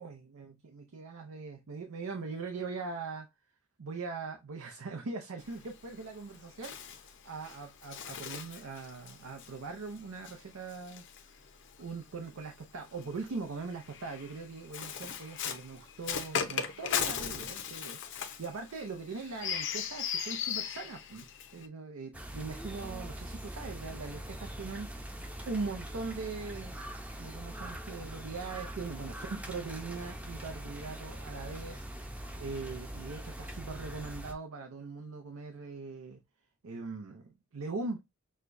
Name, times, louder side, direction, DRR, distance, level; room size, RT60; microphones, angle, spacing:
voice 1, 0.0-3.3 3.8-11.1 11.8-24.9 25.5-26.8 27.2-31.9 32.4-36.2 36.6-38.0, right 4 dB, 90° right, 0.6 m, -41 dB
Bird, 5.4-11.9 12.9-21.7, left 7 dB, 60° left, 0.6 m, -38 dB
sound 1, 22.1-34.3, right 1 dB, 5° right, 0.5 m, -42 dB
6.3 x 2.2 x 2.6 m
head